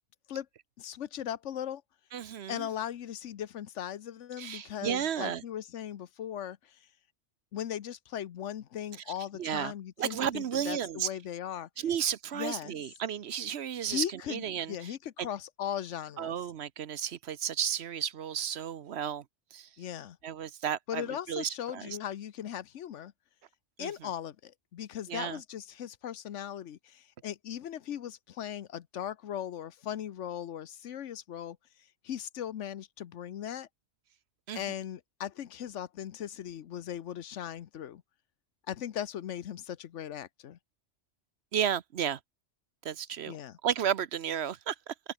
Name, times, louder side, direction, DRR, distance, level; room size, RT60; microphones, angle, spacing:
voice 1, 0.8-1.8 2.5-6.8 7.5-11.7 12.3-12.7 13.8-16.4 19.8-20.2 20.9-23.1 23.8-31.6 32.0-33.7 34.5-38.0 38.7-40.6 43.3-43.6, left 10 dB, 85° left, 1.1 m, -38 dB
voice 2, 2.1-2.7 4.4-5.4 9.4-9.7 10.0-11.1 11.8-15.3 16.2-19.2 19.5-19.7 20.2-22.0 23.8-24.1 25.1-25.4 34.5-34.7 41.5-42.2 42.8-43.4 43.6-44.9, right 9 dB, 65° right, 1.0 m, -33 dB
open air
omnidirectional pair, 1.2 m